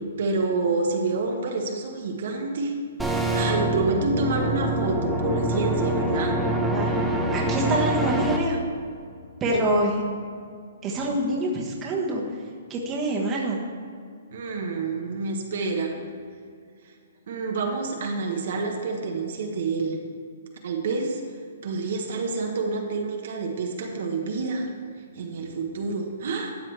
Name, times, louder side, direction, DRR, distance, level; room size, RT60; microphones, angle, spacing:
voice 1, 0.2-2.7 3.2-6.4 14.3-16.0 17.3-20.0 20.6-21.2 21.6-24.7 25.2-26.5, right 3 dB, 60° right, 2 dB, 1.2 m, -28 dB
sound 1, 3.0-8.4, right 1 dB, 5° right, 0.7 m, -25 dB
voice 2, 6.7-8.6 9.4-10.0 10.8-12.2 12.7-13.6, right 1 dB, 20° right, -3 dB, 1.4 m, -26 dB
12.5 x 7.4 x 3.3 m, 2.2 s
hypercardioid pair, 155°, 0 cm